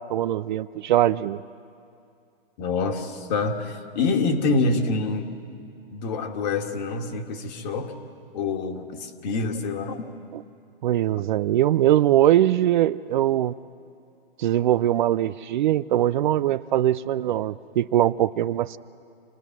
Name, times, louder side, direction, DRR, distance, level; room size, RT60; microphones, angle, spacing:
voice 1, 0.0-1.4 10.8-13.6 14.4-18.8, right 12 dB, 55° right, 16 dB, 0.5 m, -21 dB
voice 2, 2.6-5.3 5.9-7.9 8.3-10.0, left 3 dB, 45° left, 4 dB, 2.1 m, -26 dB
27.5 x 18.5 x 6.1 m, 2.5 s
hypercardioid pair, 140°, 30 cm